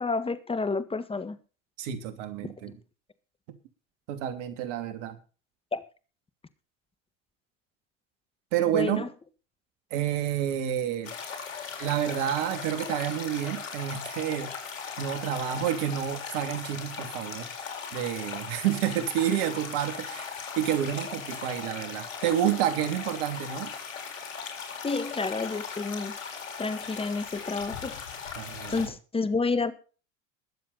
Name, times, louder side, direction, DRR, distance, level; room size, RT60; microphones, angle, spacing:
voice 1, 0.0-1.4 5.7-5.8 8.7-9.1 24.8-26.2 26.6-28.0 28.7-29.7, left 4 dB, 15° left, 1.6 m, -30 dB
voice 2, 1.8-2.8 4.1-5.2 8.5-9.1 9.9-11.1 11.8-14.5 15.0-17.5 17.9-20.2 20.6-23.7 28.3-28.9, right 11 dB, 65° right, 2.8 m, -29 dB
sound 1, 11.0-28.9, left 6 dB, 80° left, 4.1 m, -38 dB
21.5 x 7.6 x 4.1 m
hypercardioid pair, 90°, 40 cm